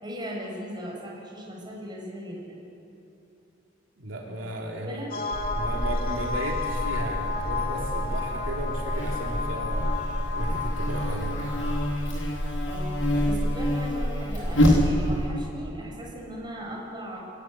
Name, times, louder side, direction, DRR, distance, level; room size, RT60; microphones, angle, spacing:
voice 1, 0.0-2.6 4.9-5.2 12.6-17.2, equal, 25° right, -2 dB, 5.5 m, -38 dB
voice 2, 4.0-5.0 5.5-10.0 10.3-11.4, right 1 dB, 80° right, -1 dB, 2.9 m, -35 dB
sound 1, 5.1-11.8, left 4 dB, 50° left, 2.0 m, -33 dB
Buzz, 5.3-15.3, equal, 85° left, 6.9 m, -27 dB
23.0 x 15.5 x 9.7 m, 2.8 s
head